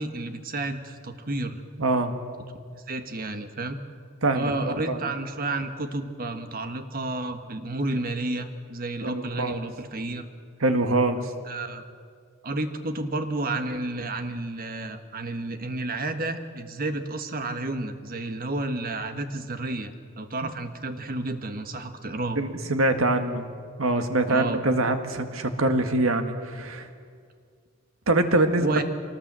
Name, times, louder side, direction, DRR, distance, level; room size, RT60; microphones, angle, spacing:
voice 1, 0.0-1.6 2.9-3.8 4.3-10.3 11.5-11.9 12.4-22.4 24.3-24.6 28.6-28.8, right 2 dB, 45° right, 8 dB, 1.5 m, -31 dB
voice 2, 1.8-2.1 4.2-5.0 9.0-9.6 10.6-11.3 20.4-20.5 22.4-23.5 23.8-26.9 28.1-28.7, right 2 dB, 85° right, 7 dB, 1.8 m, -24 dB
25.0 x 19.0 x 7.6 m, 2.1 s
head